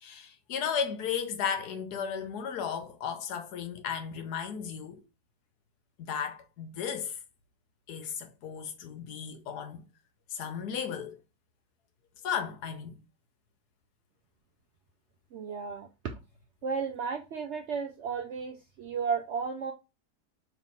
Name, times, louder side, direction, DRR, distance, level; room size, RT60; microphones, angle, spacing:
voice 1, 0.0-5.0 6.0-7.1 7.9-9.8 10.3-11.2 12.2-13.0, left 7 dB, 75° left, 1.3 m, -35 dB
voice 2, 15.3-16.2 16.6-19.7, right 5 dB, 70° right, 0.7 m, -34 dB
3.3 x 3.1 x 4.1 m
omnidirectional pair, 1.7 m